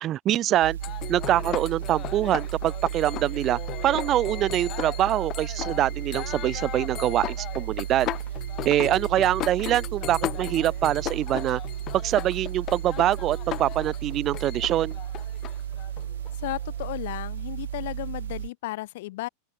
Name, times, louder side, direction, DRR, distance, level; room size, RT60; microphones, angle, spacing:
voice 1, 0.0-0.8 1.1-8.1 8.6-11.6 12.0-15.0, right 13 dB, 40° right, 0.6 m, -24 dB
sound 1, 0.6-18.5, right 10 dB, 85° right, 0.9 m, -34 dB
sound 2, 0.8-17.1, left 14 dB, 40° left, 1.3 m, -37 dB
voice 2, 16.4-19.3, left 18 dB, 70° left, 2.6 m, -34 dB
open air
hypercardioid pair, 115°, 0 cm